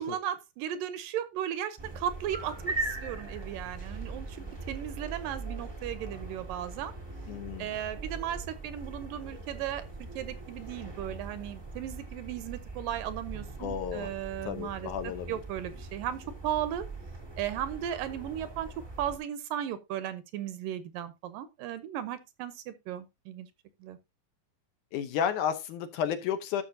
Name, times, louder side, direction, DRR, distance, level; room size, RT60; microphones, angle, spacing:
voice 1, 0.0-4.4 4.7-6.9 7.6-9.8 10.2-16.9 17.4-23.5 23.8-24.0, right 10 dB, 80° right, 2.5 m, -36 dB
sound 1, 1.8-19.2, right 3 dB, 20° right, 0.7 m, -41 dB
voice 2, 7.3-7.7 13.6-14.1 14.4-15.4 24.9-26.6, left 8 dB, 70° left, 2.2 m, -32 dB
12.5 x 6.5 x 2.7 m
omnidirectional pair, 4.0 m